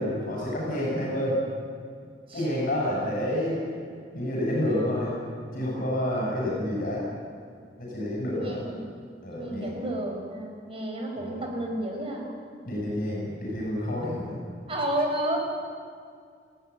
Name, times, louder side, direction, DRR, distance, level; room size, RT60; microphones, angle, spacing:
voice 1, 0.0-1.4 2.3-3.6 4.1-5.1 5.5-7.0 7.8-8.6 9.2-9.8 11.1-11.4 12.6-14.4, left 1 dB, 55° left, -4 dB, 7.5 m, -29 dB
voice 2, 7.9-8.8 9.3-12.3 14.7-15.4, right 1 dB, 35° right, 1 dB, 4.8 m, -31 dB
19.0 x 16.5 x 10.0 m, 2.2 s
head